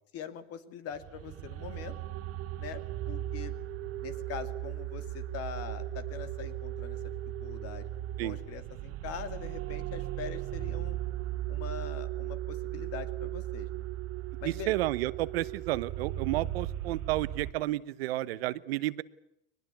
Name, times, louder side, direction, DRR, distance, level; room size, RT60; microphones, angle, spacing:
voice 1, 0.1-1.9 2.6-3.5 4.0-7.1 7.4-7.9 8.2-11.0 11.5-13.9 14.4-14.7, left 8 dB, 55° left, 11 dB, 2.6 m, -43 dB
sound 1, 0.9-17.5, right 13 dB, 55° right, 1.3 m, -37 dB
voice 2, 14.4-19.0, right 16 dB, 85° right, 16 dB, 1.1 m, -31 dB
22.0 x 20.0 x 8.4 m, 0.82 s
supercardioid pair, 105°, 29 cm